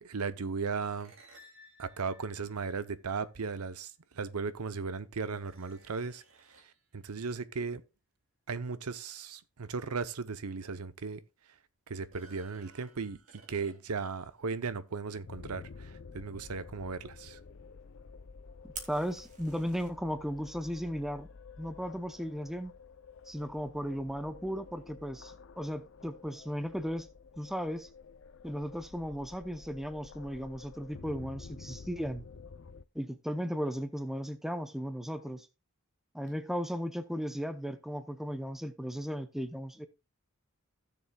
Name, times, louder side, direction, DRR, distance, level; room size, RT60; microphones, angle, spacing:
voice 1, 0.0-1.1 1.8-6.2 6.9-7.8 8.5-11.2 11.9-13.2 13.5-17.4, right 4 dB, 85° right, 0.7 m, -36 dB
sound 1, 0.7-3.2 4.4-4.5 5.3-6.9 10.1-10.2 10.7-10.8 12.0-14.1, right 1 dB, 65° right, 2.7 m, -59 dB
sound 2, 15.2-32.8, left 4 dB, 55° left, 0.5 m, -51 dB
voice 2, 18.6-21.3 21.6-22.7 23.3-27.1 27.4-27.9 28.4-32.2 32.9-35.5 36.1-39.9, equal, ahead, 0.6 m, -36 dB
Fire, 18.7-19.9, right 5 dB, 35° right, 1.9 m, -46 dB
16.0 x 6.9 x 2.3 m
head